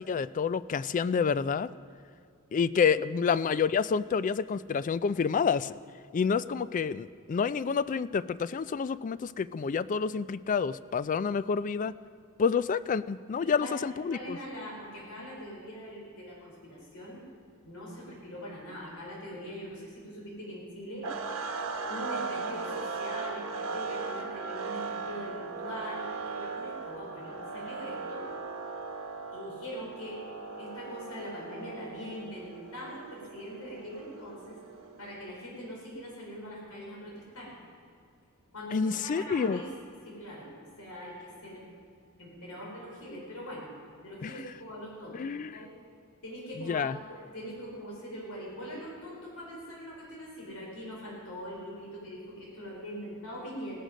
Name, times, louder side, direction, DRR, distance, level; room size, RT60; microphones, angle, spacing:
voice 1, 0.0-1.7 2.5-5.8 6.1-11.9 12.4-14.4 38.7-39.6 44.2-44.3 45.1-45.6 46.6-47.0, left 6 dB, 35° left, 17 dB, 0.3 m, -28 dB
voice 2, 2.6-3.0 13.4-13.8 14.1-17.2 17.6-21.3 21.9-28.3 29.3-30.3 30.6-34.6 35.0-37.5 38.5-39.7 40.0-41.6 42.2-43.7 44.0-45.7 46.2-53.8, equal, 85° left, -4 dB, 4.4 m, -42 dB
sound 1, 21.0-35.1, right 4 dB, 65° right, 1.1 m, -38 dB
17.5 x 13.0 x 5.1 m, 2.3 s
head